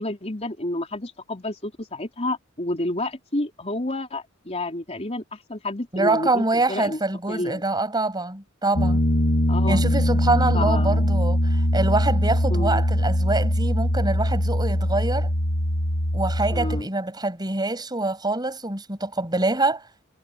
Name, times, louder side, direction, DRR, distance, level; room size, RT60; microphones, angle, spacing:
voice 1, 0.0-7.0 7.3-7.6 9.5-9.8 10.5-11.1 12.5-12.8 16.5-16.9, left 2 dB, 30° left, 4.0 m, -30 dB
voice 2, 5.9-9.0 9.7-15.3 16.1-19.8, right 2 dB, 20° right, 6.6 m, -25 dB
Piano, 8.8-16.8, equal, 55° left, 1.8 m, -22 dB
head